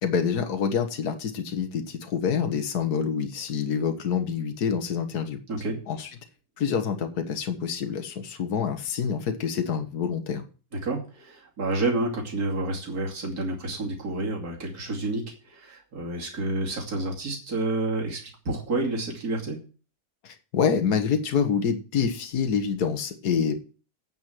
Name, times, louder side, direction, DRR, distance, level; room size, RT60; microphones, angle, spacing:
voice 1, 0.0-5.4 5.9-6.1 6.6-10.4 20.2-23.5, left 6 dB, 65° left, 6 dB, 1.8 m, -27 dB
voice 2, 5.5-5.8 10.8-19.6, right 2 dB, 60° right, -1 dB, 3.1 m, -29 dB
9.0 x 7.3 x 7.8 m, 0.36 s
omnidirectional pair, 1.8 m